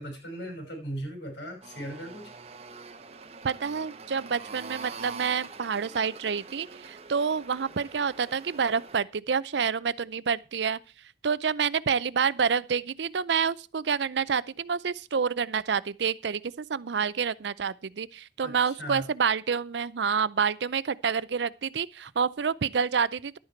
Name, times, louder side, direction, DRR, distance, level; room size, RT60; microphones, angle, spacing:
voice 1, 0.0-2.3 18.4-19.1, right 1 dB, 80° left, 5.6 m, -38 dB
sound 1, 1.6-9.0, right 4 dB, 35° right, 0.9 m, -45 dB
voice 2, 3.4-10.8 11.2-23.4, right 6 dB, 80° right, 0.5 m, -28 dB
11.5 x 9.6 x 4.5 m
head